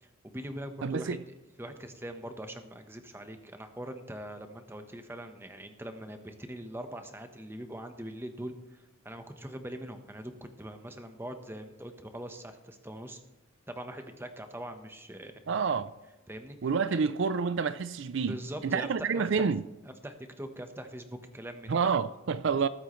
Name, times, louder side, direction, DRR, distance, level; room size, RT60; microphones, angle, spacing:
voice 1, 0.0-13.2 13.7-15.6 16.3-17.0 18.3-19.5 19.8-21.9, right 1 dB, 10° right, 1.0 m, -42 dB
voice 2, 0.8-1.2 15.5-15.9 16.6-19.6 21.7-22.7, right 5 dB, 60° right, 0.4 m, -28 dB
20.0 x 9.2 x 3.2 m
head